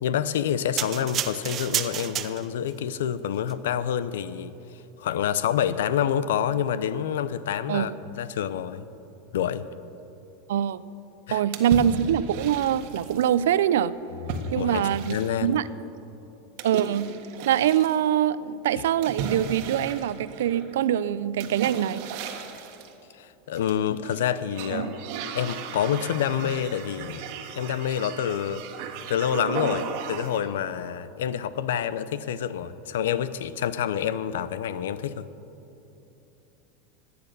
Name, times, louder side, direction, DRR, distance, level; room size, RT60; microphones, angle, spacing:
voice 1, 0.0-4.5 5.0-7.9 8.2-8.8 9.3-9.6 11.3-11.4 14.2-15.6 18.8-18.9 23.1-24.9 25.3-27.2 27.5-28.6 29.1-35.3, left 9 dB, 90° left, 15 dB, 0.6 m, -27 dB
sound 1, 0.8-2.7 3.4-3.5, right 10 dB, 35° right, 0.7 m, -30 dB
voice 2, 10.5-10.8 11.3-14.0 14.5-15.7 16.6-17.2 17.5-22.0, right 10 dB, 85° right, 16 dB, 0.5 m, -24 dB
sound 2, 11.5-13.3 14.3-15.6 16.6-18.0 19.0-20.7 21.4-22.9 23.5-24.2 24.5-30.5, right 6 dB, 60° right, 1.5 m, -35 dB
14.5 x 9.6 x 6.8 m, 2.9 s
supercardioid pair, 135°, 0 cm